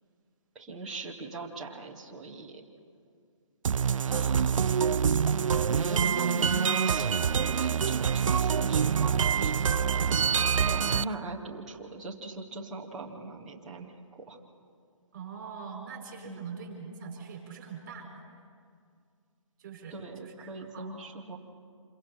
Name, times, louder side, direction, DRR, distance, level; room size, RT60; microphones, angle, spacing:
voice 1, 0.5-2.6 4.1-4.8 5.7-9.9 10.7-14.4 16.2-16.4 19.9-21.4, right 2 dB, ahead, -6 dB, 0.4 m, -40 dB
sound 1, 3.6-11.0, right 7 dB, 80° right, 0.5 m, -26 dB
voice 2, 4.3-4.9 10.1-11.0 15.1-18.1 19.6-20.9, right 6 dB, 30° right, -1 dB, 5.3 m, -43 dB
27.5 x 23.0 x 4.4 m, 2.2 s
hypercardioid pair, 170°, 17 cm